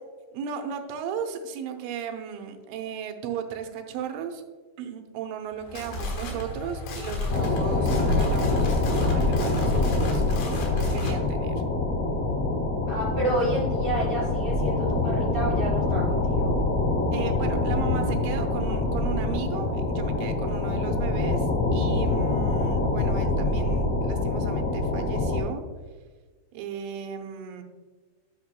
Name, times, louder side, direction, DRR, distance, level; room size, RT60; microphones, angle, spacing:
voice 1, 0.3-4.4 4.8-11.6 17.1-25.6 26.5-27.6, right 7 dB, 90° right, 5 dB, 3.3 m, -36 dB
sound 1, 5.5-11.2, left 2 dB, 85° left, 3.9 m, -31 dB
sound 2, 7.3-25.4, left 2 dB, 70° left, 1.0 m, -25 dB
voice 2, 12.9-16.5, right 1 dB, 50° left, -7 dB, 1.6 m, -30 dB
12.5 x 6.1 x 2.2 m, 1.4 s
omnidirectional pair, 5.3 m